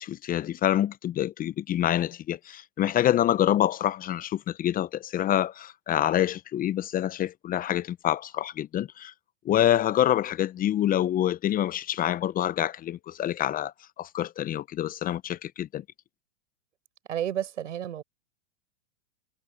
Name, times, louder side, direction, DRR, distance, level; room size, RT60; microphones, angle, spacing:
voice 1, 0.0-9.1 9.4-15.8, left 11 dB, 25° left, 0.7 m, -26 dB
voice 2, 17.1-18.0, right 10 dB, 85° right, 5.2 m, -31 dB
hypercardioid pair, 120°, 36 cm